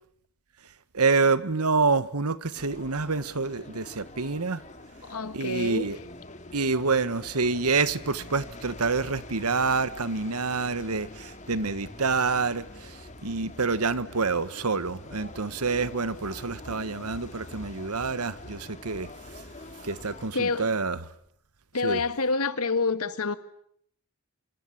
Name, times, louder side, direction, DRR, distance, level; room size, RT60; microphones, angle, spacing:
voice 1, 0.9-4.6 5.3-6.0 6.5-19.1 19.8-21.0 21.8-22.0, right 4 dB, 85° right, 1.4 m, -27 dB
sound 1, 2.5-20.3, left 2 dB, 30° left, 3.0 m, -45 dB
voice 2, 5.0-6.0 20.3-20.7 21.7-23.3, left 4 dB, 85° left, 1.8 m, -28 dB
26.5 x 26.5 x 8.6 m
head